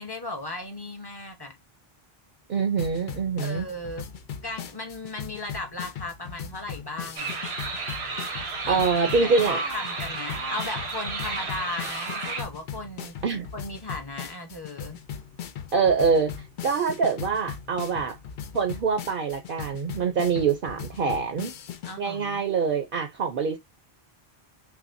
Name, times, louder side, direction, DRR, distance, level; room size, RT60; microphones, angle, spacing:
voice 1, 0.0-1.6 3.4-4.1 4.4-7.4 8.7-8.8 9.2-13.1 13.5-15.0 21.8-22.4, left 2 dB, 25° left, 0.9 m, -36 dB
voice 2, 2.5-3.7 8.7-9.6 13.2-13.5 15.7-16.3 16.6-18.2 18.5-21.5 22.0-23.6, right 5 dB, 60° right, 0.8 m, -25 dB
sound 1, 2.8-22.0, left 8 dB, 60° left, 0.7 m, -39 dB
sound 2, 7.2-12.4, right 3 dB, 85° right, 1.2 m, -32 dB
5.8 x 2.1 x 2.5 m
omnidirectional pair, 1.0 m